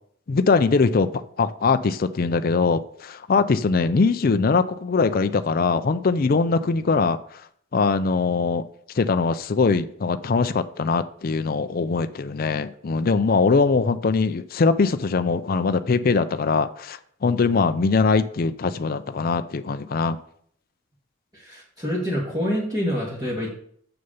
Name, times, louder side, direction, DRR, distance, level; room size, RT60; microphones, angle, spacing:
voice 1, 0.3-7.5 7.7-8.6 8.9-20.2, left 4 dB, 45° left, 10 dB, 0.4 m, -22 dB
voice 2, 21.3-23.5, equal, 20° right, -5 dB, 1.9 m, -26 dB
7.0 x 6.5 x 5.5 m, 0.63 s
head